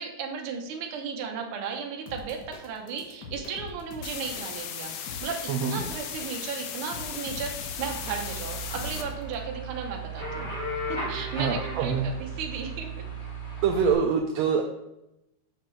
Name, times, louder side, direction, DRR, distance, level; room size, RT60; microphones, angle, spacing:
voice 1, 0.0-10.5 10.9-12.9, right 6 dB, 65° right, 2 dB, 1.3 m, -35 dB
sound 1, 2.1-9.4, left 4 dB, 65° left, 1.0 m, -43 dB
sound 2, 4.0-9.0, left 8 dB, 90° left, 2.2 m, -37 dB
voice 2, 5.5-5.8 11.4-12.1 13.6-14.6, right 6 dB, 85° right, 3 dB, 1.5 m, -25 dB
sound 3, 7.8-13.9, right 2 dB, 35° left, 3.1 m, -35 dB
7.5 x 6.6 x 3.2 m, 0.89 s
omnidirectional pair, 3.5 m